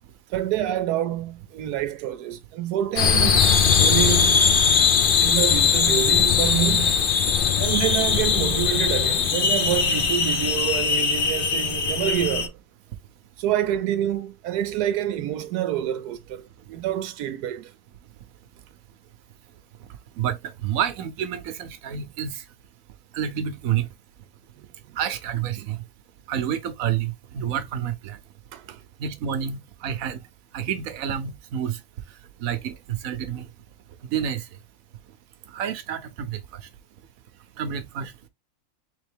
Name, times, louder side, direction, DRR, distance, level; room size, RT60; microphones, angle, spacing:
voice 1, 0.3-4.4 5.2-7.0 7.6-12.5 13.4-17.7 24.6-24.7 25.6-25.7 28.5-28.8, right 12 dB, 90° right, 1.1 m, -27 dB
sound 1, 3.0-12.5, left 6 dB, 50° left, 0.6 m, -20 dB
voice 2, 20.2-22.3 23.1-23.9 25.0-25.8 26.3-28.2 29.0-30.2 30.5-31.8 32.4-33.5 34.1-34.4 35.5-36.4 37.6-38.3, right 9 dB, 65° right, 1.1 m, -29 dB
3.7 x 3.6 x 3.4 m
omnidirectional pair, 1.6 m